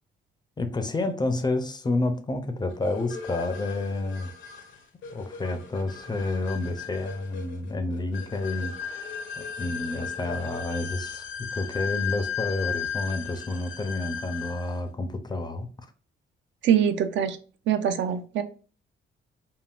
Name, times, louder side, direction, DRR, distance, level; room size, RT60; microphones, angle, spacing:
voice 1, 0.6-4.3 5.1-15.7, left 2 dB, 20° left, 0.4 m, -30 dB
sound 1, 2.8-14.8, left 7 dB, 75° left, 0.6 m, -36 dB
voice 2, 16.6-17.4 17.7-18.4, right 9 dB, 70° right, 0.4 m, -23 dB
3.6 x 2.0 x 2.3 m
cardioid pair, 90°, 20 cm